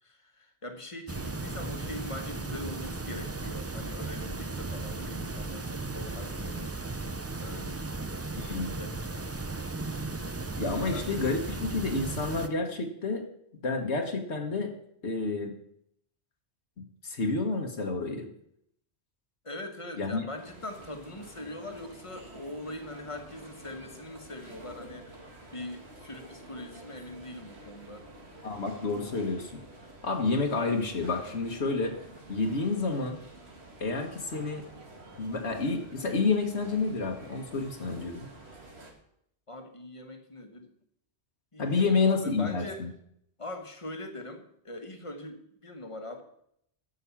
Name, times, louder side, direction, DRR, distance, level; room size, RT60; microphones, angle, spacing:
voice 1, 0.0-7.0 7.4-8.2 8.8-9.4 10.2-10.3 10.9-11.3 19.4-28.1 39.5-40.7 41.5-42.9 43.4-46.2, left 1 dB, 30° left, 5 dB, 1.4 m, -42 dB
sound 1, 1.1-12.5, right 3 dB, 25° right, 0.3 m, -36 dB
voice 2, 8.3-8.7 10.5-13.2 13.6-14.7 15.0-15.5 16.8-18.3 20.0-20.3 28.4-29.6 30.0-32.0 32.3-33.2 33.8-34.6 35.2-38.3 41.6-42.9, left 3 dB, 75° left, 3 dB, 1.6 m, -29 dB
sound 2, 20.4-38.9, right 2 dB, 70° right, 2.3 m, -49 dB
12.0 x 6.4 x 7.1 m, 0.73 s
omnidirectional pair, 1.1 m